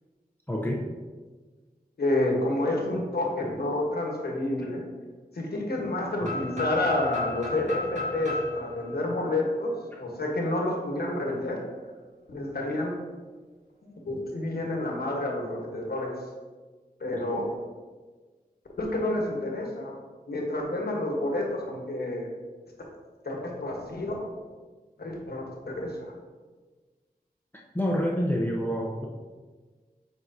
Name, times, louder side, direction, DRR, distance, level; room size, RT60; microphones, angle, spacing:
voice 1, 0.5-0.9 6.2-6.3 9.9-10.0 27.7-29.1, equal, 10° left, -3 dB, 0.7 m, -27 dB
voice 2, 2.0-4.8 5.3-9.7 10.0-11.6 12.3-13.0 14.0-16.1 17.0-17.5 18.8-19.9 20.3-22.3 23.2-24.3 25.0-26.1, left 1 dB, 85° left, 0 dB, 1.2 m, -29 dB
sound 1, 6.2-10.1, left 2 dB, 50° right, 1.7 m, -34 dB
7.5 x 4.7 x 2.7 m, 1.4 s
wide cardioid pair, 80°, 16 cm